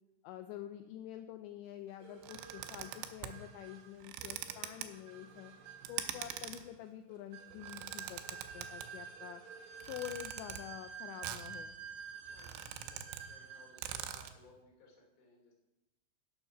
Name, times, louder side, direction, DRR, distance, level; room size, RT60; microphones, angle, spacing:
voice 1, 0.2-5.5 5.9-8.2 8.5-9.4 9.9-11.7, left 12 dB, 85° left, 7 dB, 2.6 m, -47 dB
sound 1, 2.0-14.0, right 6 dB, 70° right, 3.7 m, -50 dB
sound 2, 2.2-3.4 4.0-4.9 5.9-6.6 7.5-8.9 9.8-10.6 11.2-11.6 11.9-12.0 12.3-13.2 13.5-13.6 13.8-14.4, right 10 dB, 90° right, 3.1 m, -44 dB
voice 2, 5.9-6.4 12.3-15.6, left 2 dB, 35° left, -2 dB, 2.6 m, -63 dB
9.9 x 7.1 x 5.9 m, 0.96 s
omnidirectional pair, 5.4 m